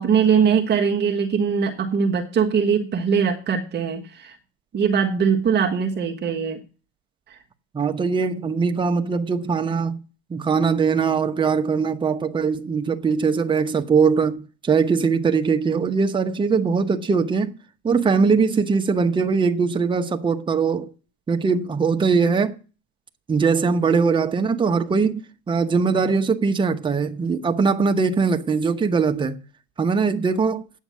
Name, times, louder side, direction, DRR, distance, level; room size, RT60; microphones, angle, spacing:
voice 1, 0.0-4.3 4.7-6.6, right 6 dB, 30° right, 1.4 m, -21 dB
voice 2, 7.7-10.0 10.3-17.5 17.8-20.9 21.3-22.6 23.3-25.2 25.5-29.4 29.8-30.6, right 5 dB, 15° right, 1.0 m, -21 dB
9.3 x 7.2 x 7.3 m
supercardioid pair, 120°, 33 cm